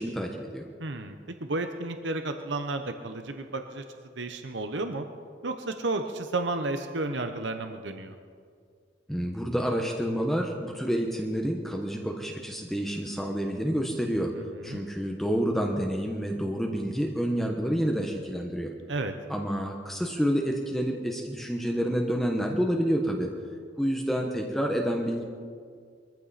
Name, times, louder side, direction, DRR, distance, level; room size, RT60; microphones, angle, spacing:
voice 1, 0.0-0.7 9.1-14.3 14.6-18.7 19.3-23.3 23.8-25.2, equal, ahead, 0 dB, 1.1 m, -28 dB
voice 2, 0.8-3.8 4.2-5.0 5.4-8.1 14.7-14.8 18.9-19.1, right 2 dB, 70° right, 7 dB, 1.0 m, -32 dB
23.0 x 15.0 x 4.2 m, 2.1 s
head